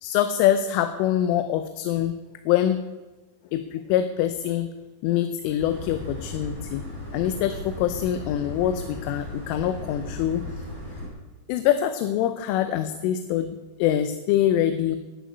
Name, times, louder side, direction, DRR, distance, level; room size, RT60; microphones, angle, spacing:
voice 1, 0.0-2.1 2.5-2.8 3.5-4.7 5.0-10.4 11.5-15.0, left 11 dB, 85° left, 9 dB, 3.3 m, -24 dB
sound 1, 5.6-11.1, left 1 dB, 5° left, 4.1 m, -36 dB
11.5 x 10.5 x 9.4 m, 1.2 s
omnidirectional pair, 5.6 m